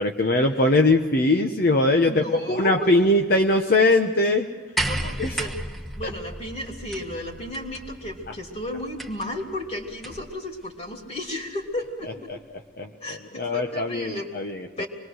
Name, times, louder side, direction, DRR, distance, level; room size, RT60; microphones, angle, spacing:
voice 1, 0.0-4.5 5.2-5.3 12.3-12.4 12.8-14.8, left 2 dB, 50° left, 4 dB, 1.0 m, -21 dB
voice 2, 2.1-2.9 4.8-5.6 5.9-12.3 13.0-14.3 14.8-14.9, left 1 dB, 35° left, 1 dB, 3.2 m, -33 dB
sound 1, 4.8-10.4 11.4-11.5, right 1 dB, ahead, 1.3 m, -34 dB
25.5 x 21.0 x 6.4 m, 1.3 s
head